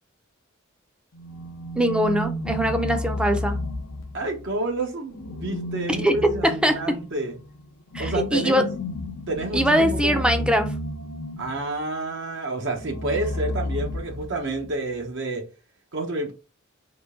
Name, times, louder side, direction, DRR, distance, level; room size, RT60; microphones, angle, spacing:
sound 1, 1.1-4.5 5.1-11.7 12.7-14.7, left 1 dB, 75° left, 0.6 m, -32 dB
voice 1, 1.8-3.6 6.0-6.2 6.4-6.8 7.9-8.7 9.5-10.7, equal, 5° right, 0.5 m, -22 dB
voice 2, 4.1-7.4 8.0-8.7 9.3-10.5 11.4-15.4 15.9-16.3, right 2 dB, 60° right, 0.9 m, -29 dB
3.8 x 3.3 x 3.6 m
head